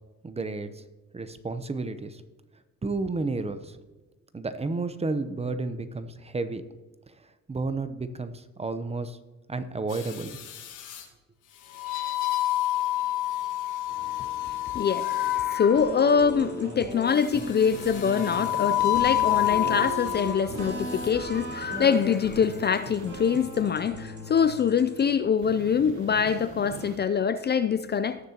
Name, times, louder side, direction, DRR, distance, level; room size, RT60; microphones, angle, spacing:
voice 1, 0.2-0.7 1.1-2.2 2.8-3.8 4.3-6.6 7.5-9.2 9.5-10.4, right 3 dB, 20° right, 0.8 m, -31 dB
sound 1, 9.9-11.0 11.7-16.0 17.2-20.4 20.8-21.1, left 14 dB, 85° left, 1.5 m, -28 dB
voice 2, 14.0-28.2, left 7 dB, 35° left, 0.4 m, -24 dB
sound 2, 15.7-25.1, right 1 dB, 50° right, 3.5 m, -37 dB
sound 3, 17.6-19.5 21.3-23.6 25.4-27.0, right 6 dB, 80° right, 1.0 m, -44 dB
17.5 x 6.7 x 2.9 m
cardioid pair, 90°, 30 cm